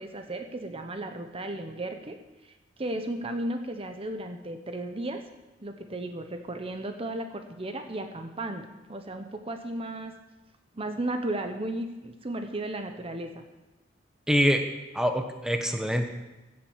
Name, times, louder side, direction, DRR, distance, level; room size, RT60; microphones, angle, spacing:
voice 1, 0.0-2.2 2.4-5.2 5.6-10.1 10.7-13.4, right 1 dB, 30° right, 6 dB, 0.9 m, -35 dB
voice 2, 14.3-14.6 14.9-16.1, equal, 5° right, 5 dB, 1.1 m, -24 dB
16.0 x 7.8 x 7.2 m, 1.1 s
head